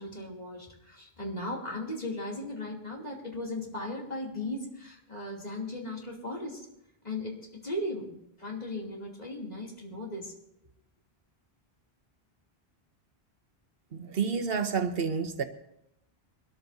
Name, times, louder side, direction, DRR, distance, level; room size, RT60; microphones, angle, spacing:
voice 1, 0.0-6.7 7.0-10.3, left 1 dB, 40° left, -2 dB, 2.9 m, -37 dB
voice 2, 13.9-15.4, right 6 dB, 65° right, 7 dB, 1.1 m, -29 dB
23.5 x 13.0 x 2.7 m, 0.79 s
omnidirectional pair, 1.0 m